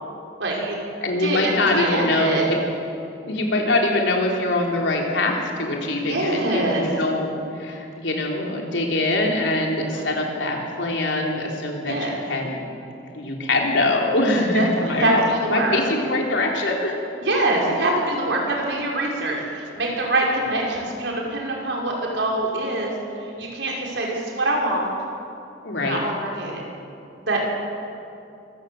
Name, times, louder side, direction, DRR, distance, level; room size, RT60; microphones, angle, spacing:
voice 1, 0.4-0.8 1.2-2.4 6.0-6.8 9.9-10.0 11.8-12.1 14.5-15.8 17.2-22.9 23.4-24.9 25.8-26.6 27.3-27.4, right 2 dB, 75° right, -2 dB, 5.4 m, -24 dB
voice 2, 1.0-2.6 3.2-12.7 13.1-16.9 25.6-26.0, left 2 dB, 80° left, 0 dB, 3.7 m, -23 dB
24.5 x 15.0 x 7.8 m, 2.6 s
head